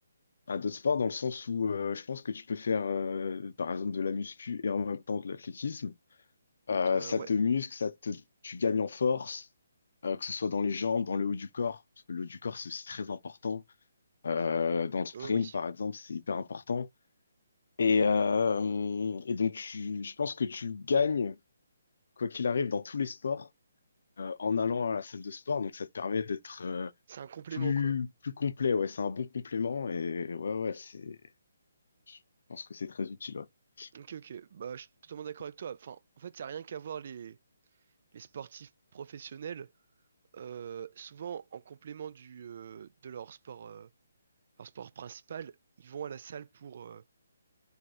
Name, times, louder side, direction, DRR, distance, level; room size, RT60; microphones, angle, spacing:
voice 1, 0.5-5.9 6.7-9.5 10.0-11.8 12.1-13.6 14.2-16.9 17.8-21.4 22.2-23.5 24.2-26.9 27.6-31.2 32.1-32.2 32.5-33.5 33.8-33.9, left 5 dB, 60° left, 0.5 m, -31 dB
voice 2, 6.9-7.3 15.1-15.6 27.1-27.9 33.9-37.4 38.1-39.7 40.3-43.9 44.6-47.0, right 8 dB, 50° right, 0.4 m, -43 dB
3.3 x 2.1 x 4.1 m
figure-of-eight pair, 145°, 0 cm